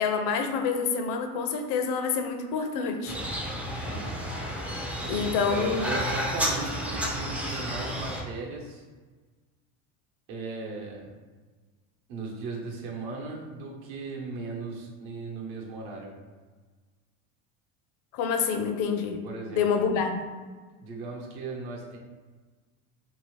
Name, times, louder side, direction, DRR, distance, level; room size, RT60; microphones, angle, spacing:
voice 1, 0.0-3.2 5.0-5.9 18.1-19.2 19.5-20.2, left 6 dB, 55° left, 5 dB, 0.5 m, -27 dB
sound 1, 3.1-8.2, equal, 5° right, 0.3 m, -31 dB
voice 2, 3.8-4.1 5.5-8.8 10.3-11.2 12.1-16.1 19.2-19.6 20.8-22.0, right 3 dB, 65° right, -1 dB, 0.9 m, -37 dB
2.8 x 2.7 x 3.1 m, 1.4 s
supercardioid pair, 115°, 38 cm